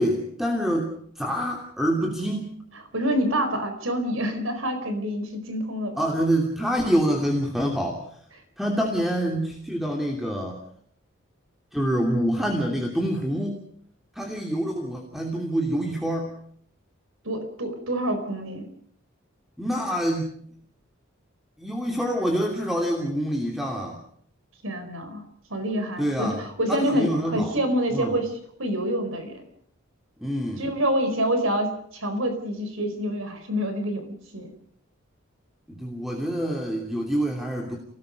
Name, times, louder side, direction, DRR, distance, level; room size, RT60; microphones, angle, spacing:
voice 1, 0.0-2.5 6.0-8.0 8.6-10.6 11.7-13.6 14.1-16.4 19.6-20.4 21.6-24.0 26.0-26.4 26.7-27.6 27.9-28.2 30.2-30.7 35.7-37.8, equal, ahead, 0 dB, 2.8 m, -26 dB
voice 2, 2.9-6.0 8.7-8.8 17.2-18.7 24.6-25.2 25.5-28.3 28.6-29.5 30.6-34.1 34.3-34.5, equal, 85° right, 8 dB, 4.5 m, -27 dB
28.5 x 19.0 x 5.3 m, 0.63 s
head